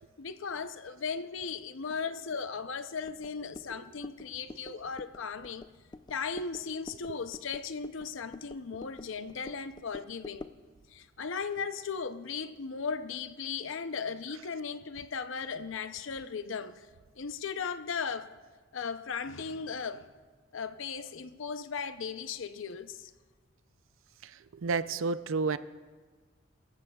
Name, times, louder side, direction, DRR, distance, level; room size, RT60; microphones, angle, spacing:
voice 1, 0.2-5.7 6.1-10.5 10.9-16.9 17.2-18.3 18.7-20.1 20.5-23.1, left 5 dB, 70° left, 0.6 m, -37 dB
sound 1, 3.1-10.7, left 2 dB, 20° left, 0.3 m, -49 dB
voice 2, 24.2-25.6, right 4 dB, 75° right, 0.5 m, -31 dB
24.0 x 15.0 x 2.3 m
head